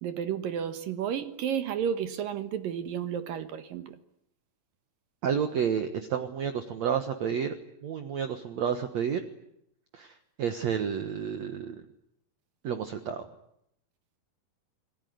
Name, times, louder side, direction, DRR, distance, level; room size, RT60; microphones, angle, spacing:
voice 1, 0.0-4.0, right 8 dB, 70° right, 10 dB, 3.0 m, -32 dB
voice 2, 5.2-7.6 7.8-9.3 9.9-11.8 12.6-13.3, right 7 dB, 55° right, 8 dB, 2.3 m, -30 dB
28.5 x 21.0 x 9.4 m, 0.76 s
omnidirectional pair, 4.2 m